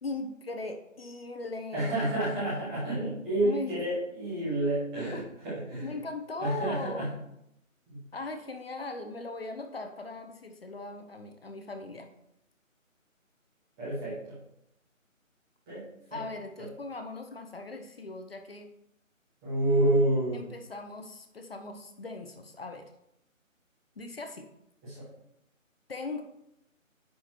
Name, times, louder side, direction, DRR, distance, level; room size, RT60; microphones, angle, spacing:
voice 1, 0.0-2.3 3.4-3.7 5.1-5.3 5.8-7.1 8.1-12.1 16.1-18.7 20.3-22.9 24.0-24.5 25.9-26.2, left 3 dB, 45° left, 6 dB, 1.0 m, -39 dB
voice 2, 1.7-5.2 5.4-5.8 6.4-7.1 13.8-14.2 15.7-15.8 19.4-20.4 24.8-25.0, right 1 dB, 5° right, -12 dB, 1.0 m, -28 dB
9.8 x 4.3 x 4.5 m, 0.80 s
figure-of-eight pair, 160°, 41 cm